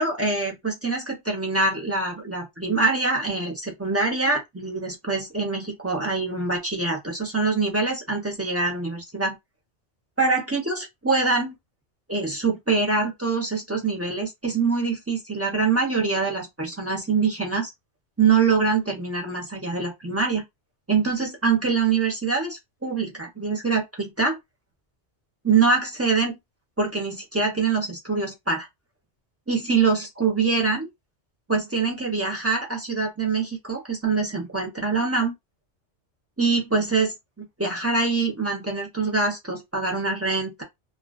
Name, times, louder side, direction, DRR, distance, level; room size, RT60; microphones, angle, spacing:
voice 1, 0.0-9.4 10.2-11.6 12.1-17.7 18.2-20.4 20.9-24.4 25.4-26.4 26.8-28.7 29.5-30.9 31.5-35.3 36.4-40.6, right 4 dB, 15° right, 0.6 m, -24 dB
2.4 x 2.2 x 2.2 m
omnidirectional pair, 1.1 m